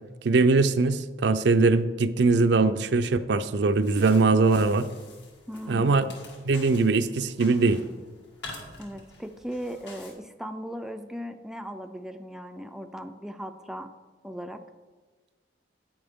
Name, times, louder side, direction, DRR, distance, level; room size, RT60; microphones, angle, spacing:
voice 1, 0.2-4.9 5.7-6.1 6.4-7.8, right 3 dB, 65° right, 11 dB, 0.5 m, -21 dB
sound 1, 3.6-10.1, left 2 dB, 75° left, 2.1 m, -47 dB
voice 2, 5.5-6.1 8.8-13.9 14.2-14.6, equal, 5° right, 6 dB, 0.4 m, -38 dB
10.5 x 8.7 x 3.6 m, 1.3 s
head